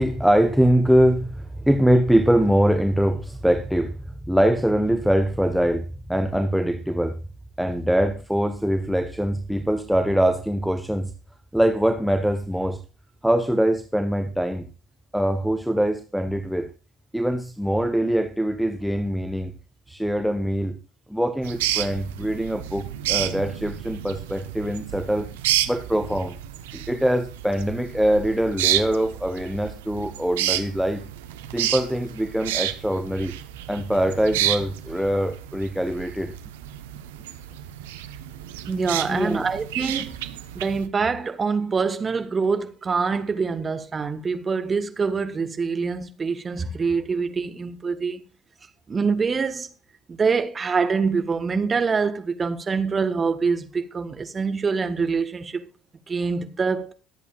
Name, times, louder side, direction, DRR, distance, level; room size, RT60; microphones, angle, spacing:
voice 1, 0.0-7.1 7.6-11.1 11.5-12.8 13.2-14.7 15.1-16.7 17.1-19.5 19.9-20.8 21.1-25.3 25.7-26.4 26.7-31.0 31.5-33.3 33.7-36.3 39.1-39.5, equal, ahead, 1.2 m, -23 dB
sound 1, 21.4-40.9, right 12 dB, 70° right, 0.9 m, -30 dB
voice 2, 38.7-40.2 40.5-48.2 48.9-49.7 50.1-55.6 56.1-56.9, right 5 dB, 30° right, 1.5 m, -25 dB
22.5 x 8.2 x 2.4 m
figure-of-eight pair, 60°, 0 cm